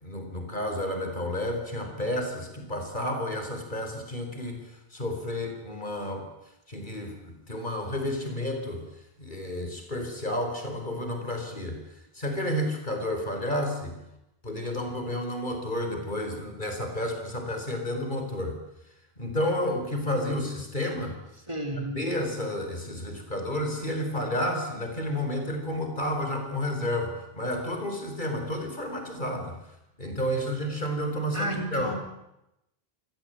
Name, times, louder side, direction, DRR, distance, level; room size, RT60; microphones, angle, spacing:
voice 1, 0.0-6.3 6.7-8.8 9.2-13.9 14.4-18.6 19.2-21.1 21.9-29.5 30.0-32.0, left 1 dB, 50° left, 4 dB, 4.7 m, -31 dB
voice 2, 21.5-22.0 31.3-32.0, right 1 dB, 30° right, 3 dB, 3.6 m, -32 dB
27.0 x 16.5 x 9.2 m, 0.87 s
omnidirectional pair, 1.1 m